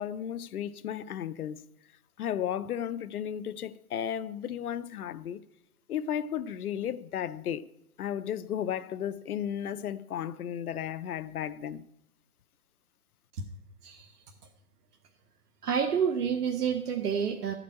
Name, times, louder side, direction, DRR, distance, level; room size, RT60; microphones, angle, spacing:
voice 1, 0.0-1.6 2.2-5.4 5.9-7.7 8.0-11.8, left 9 dB, 70° left, 0.7 m, -34 dB
voice 2, 15.6-17.5, right 7 dB, 85° right, 1.2 m, -29 dB
12.5 x 5.1 x 8.5 m
hypercardioid pair, 170°, 45 cm